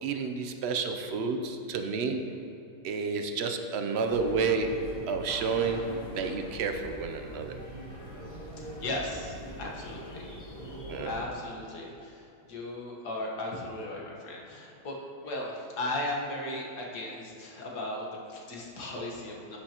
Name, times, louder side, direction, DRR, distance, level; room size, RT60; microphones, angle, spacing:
voice 1, 0.0-2.2 2.8-7.6 10.9-11.1, right 4 dB, 60° right, 6 dB, 0.7 m, -30 dB
sound 1, 4.0-11.2, equal, 40° left, 2.3 m, -42 dB
voice 2, 8.8-10.3 10.7-19.6, left 1 dB, 85° left, -2 dB, 1.9 m, -37 dB
11.0 x 8.8 x 2.9 m, 2.7 s
omnidirectional pair, 1.7 m